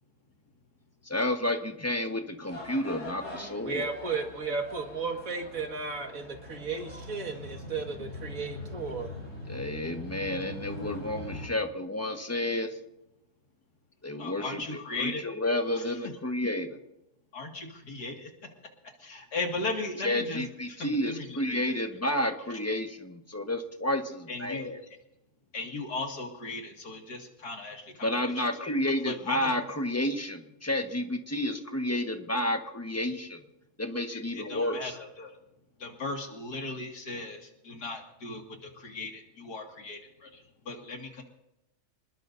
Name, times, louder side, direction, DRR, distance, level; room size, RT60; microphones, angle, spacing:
voice 1, 1.0-3.9 9.5-12.8 14.0-16.8 20.0-24.8 28.0-33.4 33.8-34.8, left 1 dB, 10° left, 4 dB, 1.3 m, -31 dB
sound 1, 2.5-11.5, left 1 dB, 50° left, 7.7 m, -42 dB
voice 2, 3.6-9.1, right 4 dB, 60° right, 3 dB, 2.2 m, -34 dB
voice 3, 14.2-15.2 15.7-16.0 17.3-18.5 19.0-21.8 22.5-22.8 24.3-24.7 25.5-28.7 29.0-29.6 34.1-35.4 35.8-41.2, left 3 dB, 90° left, 2 dB, 2.7 m, -37 dB
26.5 x 20.5 x 2.7 m, 0.88 s
omnidirectional pair, 1.7 m